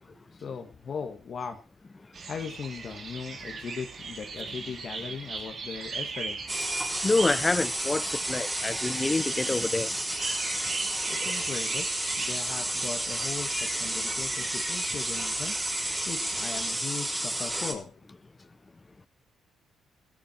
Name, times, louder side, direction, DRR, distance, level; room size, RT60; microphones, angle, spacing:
voice 1, 0.0-1.6 2.3-6.4 11.1-11.9 12.2-15.6 16.1-17.9, left 6 dB, 50° left, 1.8 m, -38 dB
sound 1, 2.1-16.7, right 4 dB, 50° right, 3.7 m, -39 dB
sound 2, 6.5-17.7, right 1 dB, 10° right, 4.0 m, -31 dB
voice 2, 7.0-9.9 11.2-11.3 13.5-13.7, left 3 dB, 20° left, 0.7 m, -27 dB
14.5 x 13.5 x 4.5 m
cardioid pair, 90°, 0 cm